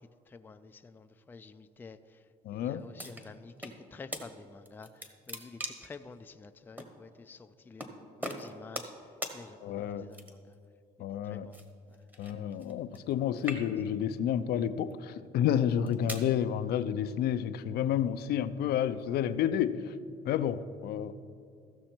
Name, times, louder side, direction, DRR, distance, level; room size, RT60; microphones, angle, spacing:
voice 1, 0.3-2.2 2.5-8.9 9.3-10.6 11.2-11.6 11.9-12.0, left 4 dB, 10° left, 9 dB, 0.3 m, -50 dB
voice 2, 2.4-2.8 9.6-10.1 11.0-11.5 12.2-19.9 20.2-21.1, left 9 dB, 70° left, 12 dB, 0.5 m, -30 dB
sound 1, 3.0-3.8 4.1-4.2 4.7-6.0 6.8-6.9 7.8-7.9 8.2-9.0 9.2-9.4 10.1-10.5 11.5-13.1 13.4-14.0 14.7-14.9 15.6-16.3, equal, 10° right, 1.1 m, -40 dB
15.0 x 6.2 x 4.4 m, 2.4 s
cardioid pair, 110°, 17 cm